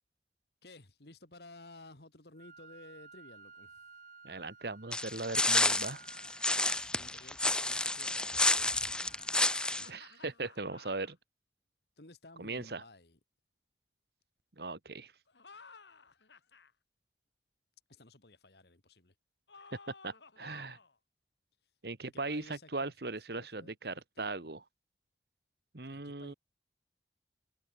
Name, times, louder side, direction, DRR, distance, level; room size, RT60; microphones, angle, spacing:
voice 1, 0.6-3.8 6.4-10.0 12.0-13.2 17.9-19.1 22.0-24.5 25.8-26.4, left 2 dB, 70° left, 2.7 m, -56 dB
Wind instrument woodwind instrument, 2.3-10.3, right 5 dB, 50° right, 5.5 m, -57 dB
voice 2, 4.2-6.0 9.9-11.2 12.4-12.8 14.6-15.1 20.0-20.8 21.8-24.6 25.7-26.3, right 3 dB, 70° right, 1.5 m, -39 dB
sound 1, 4.9-9.9, left 2 dB, 5° left, 0.3 m, -30 dB
sound 2, 9.4-11.1 15.3-16.7 19.5-21.0, left 4 dB, 90° left, 3.0 m, -55 dB
head